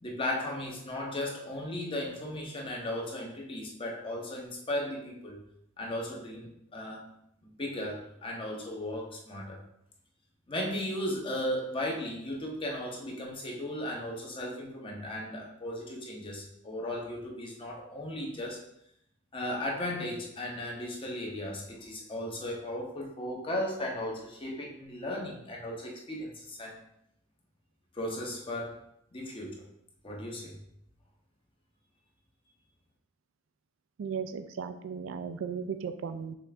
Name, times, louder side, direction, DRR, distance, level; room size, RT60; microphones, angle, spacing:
voice 1, 0.0-5.4 5.8-7.1 7.4-9.6 10.5-18.6 19.3-26.8 27.9-28.8 29.1-29.6 30.0-30.6, left 1 dB, 25° left, -1 dB, 0.8 m, -36 dB
voice 2, 34.0-36.3, right 6 dB, 70° right, 9 dB, 0.3 m, -36 dB
6.1 x 2.5 x 3.3 m, 0.76 s
head